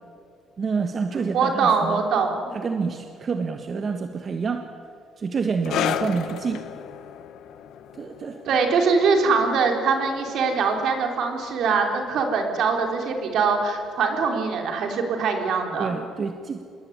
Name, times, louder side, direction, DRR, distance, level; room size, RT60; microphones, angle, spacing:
voice 1, 0.6-2.0 2.5-4.7 5.2-6.6 7.9-8.4 15.8-16.6, right 5 dB, 35° right, 6 dB, 1.5 m, -28 dB
voice 2, 1.3-2.4 8.5-15.9, right 5 dB, 60° right, 3 dB, 4.5 m, -22 dB
sound 1, 5.6-12.6 12.9-13.1 13.9-14.0, left 10 dB, 75° left, 1.6 m, -34 dB
27.0 x 21.5 x 9.8 m, 2.3 s
cardioid pair, 145°, 0 cm